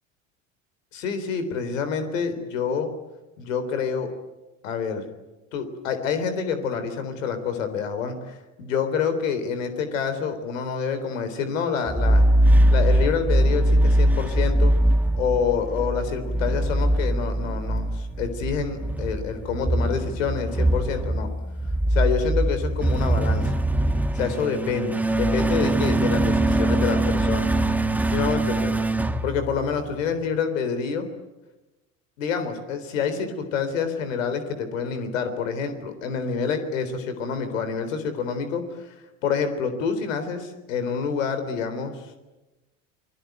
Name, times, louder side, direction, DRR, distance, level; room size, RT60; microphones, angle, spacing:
voice 1, 0.9-2.9 3.4-4.1 4.6-5.0 5.5-12.2 12.7-14.7 15.1-21.3 21.9-23.5 24.1-27.5 28.1-28.7 29.2-31.1 32.2-38.9 39.2-42.2, left 6 dB, 85° left, 9 dB, 3.8 m, -27 dB
sound 1, 11.9-30.0, right 1 dB, 5° right, 1.6 m, -22 dB
29.0 x 20.5 x 9.3 m, 1.1 s
hypercardioid pair, 85°, 38 cm